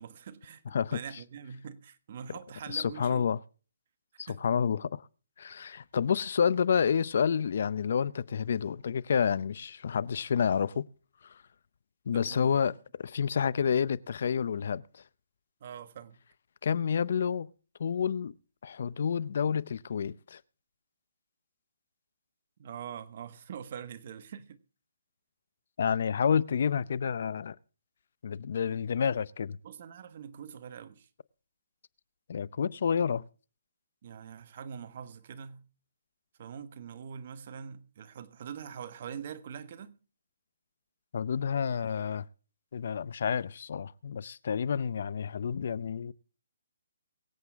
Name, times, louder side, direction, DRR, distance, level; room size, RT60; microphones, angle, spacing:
voice 1, 0.0-3.3 4.3-4.5 12.1-12.6 15.6-16.2 22.6-24.6 29.6-31.1 34.0-35.6 36.4-40.0, right 8 dB, 45° right, 1.3 m, -44 dB
voice 2, 2.7-3.4 4.2-5.1 5.4-10.9 11.2-11.4 12.1-15.0 16.6-17.5 17.8-18.3 18.6-20.4 25.8-27.6 28.2-29.6 32.3-33.2 41.1-42.3 42.7-46.1, left 7 dB, 55° left, 0.7 m, -29 dB
23.5 x 8.1 x 3.6 m
hypercardioid pair, 165°, 0 cm